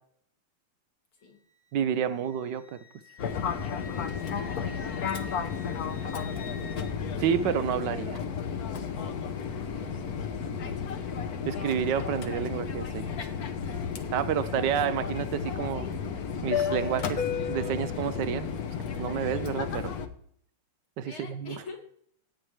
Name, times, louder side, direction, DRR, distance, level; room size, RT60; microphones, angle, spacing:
Wind instrument woodwind instrument, 1.2-7.0, left 4 dB, 10° left, 1.1 m, -48 dB
voice 1, 1.7-2.6 7.2-8.2 11.5-13.1 14.1-15.9 16.4-17.2 17.5-18.5 19.0-19.9 21.0-21.6, right 9 dB, 70° right, 13 dB, 1.1 m, -29 dB
Fixed-wing aircraft airplane, 3.2-20.1, left 6 dB, 55° left, 1.2 m, -33 dB
voice 2, 3.8-5.5 6.0-6.6 9.5-11.1 21.0-21.8, left 4 dB, 70° left, 2 dB, 3.0 m, -48 dB
15.5 x 8.9 x 3.2 m, 0.64 s
omnidirectional pair, 2.4 m